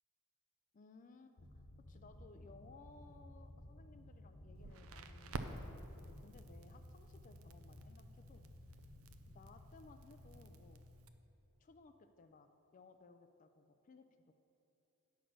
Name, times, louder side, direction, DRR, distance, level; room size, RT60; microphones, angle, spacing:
voice 1, 0.7-8.4 9.3-10.9 11.6-14.4, left 3 dB, 35° left, 8 dB, 0.4 m, -61 dB
sound 1, 1.4-11.5, left 1 dB, 60° left, 1.1 m, -57 dB
Crackle, 4.5-11.1, right 3 dB, 65° right, 0.5 m, -51 dB
9.2 x 6.0 x 6.2 m, 2.9 s
head